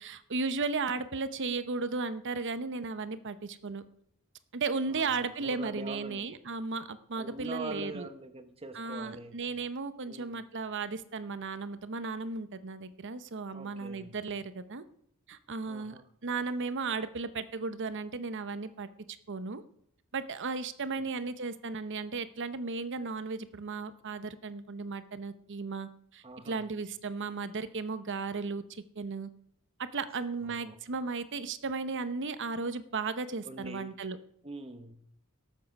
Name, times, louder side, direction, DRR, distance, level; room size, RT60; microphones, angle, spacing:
voice 1, 0.0-3.8 4.5-8.1 8.7-14.8 15.3-18.9 19.3-19.6 20.1-29.3 29.8-34.2, right 4 dB, 55° right, 0.8 m, -35 dB
voice 2, 4.9-6.3 7.1-9.4 10.0-10.5 13.5-14.2 15.6-16.0 20.9-21.1 26.2-26.7 30.4-30.8 33.4-33.9 34.4-35.0, right 2 dB, 25° right, 1.1 m, -44 dB
18.5 x 7.5 x 5.3 m
head